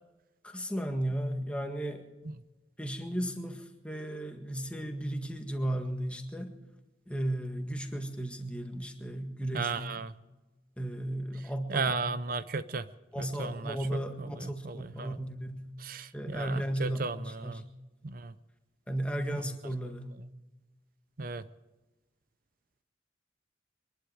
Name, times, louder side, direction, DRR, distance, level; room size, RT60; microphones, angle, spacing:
voice 1, 0.4-2.0 2.8-6.5 7.1-10.1 10.8-11.9 13.1-15.6 16.1-17.0 17.3-17.6 18.9-20.1, right 1 dB, 5° left, 4 dB, 1.7 m, -35 dB
voice 2, 9.5-10.1 11.7-12.9 13.2-13.8 14.2-15.2 15.8-17.6 18.0-18.3 21.2-21.5, right 4 dB, 50° right, 14 dB, 0.6 m, -35 dB
24.5 x 11.5 x 4.9 m, 1.1 s
head